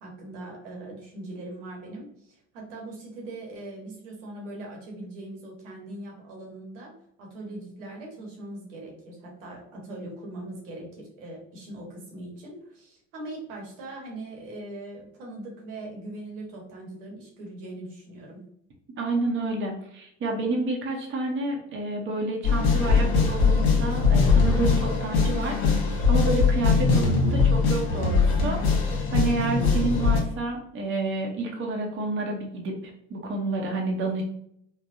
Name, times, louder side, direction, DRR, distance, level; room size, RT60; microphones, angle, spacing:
voice 1, 0.0-6.9 7.2-18.4, right 2 dB, 80° right, 0 dB, 1.2 m, -40 dB
voice 2, 19.0-32.8 33.1-34.2, right 2 dB, 35° right, 1 dB, 0.8 m, -29 dB
sound 1, 22.4-30.2, left 4 dB, 60° left, 1.0 m, -21 dB
3.4 x 2.2 x 2.6 m, 0.70 s
hypercardioid pair, 80°, 37 cm